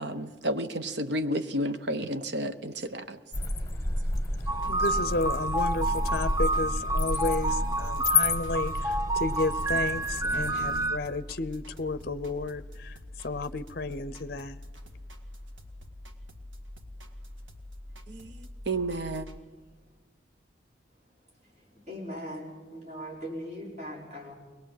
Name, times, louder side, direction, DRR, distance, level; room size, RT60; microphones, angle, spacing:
voice 1, 0.0-3.2 18.1-19.3, right 1 dB, 60° right, 10 dB, 1.0 m, -31 dB
sound 1, 3.3-10.9, left 2 dB, 15° left, 1.5 m, -31 dB
sound 2, 4.1-19.4, left 1 dB, 80° right, 1.9 m, -45 dB
sound 3, 4.5-11.0, right 2 dB, 20° right, 0.6 m, -29 dB
voice 2, 4.7-13.0 13.2-14.6, left 3 dB, 50° left, 15 dB, 0.6 m, -32 dB
voice 3, 19.5-19.9 21.0-24.3, equal, 35° right, -3 dB, 5.5 m, -41 dB
22.5 x 19.0 x 7.7 m, 1.3 s
head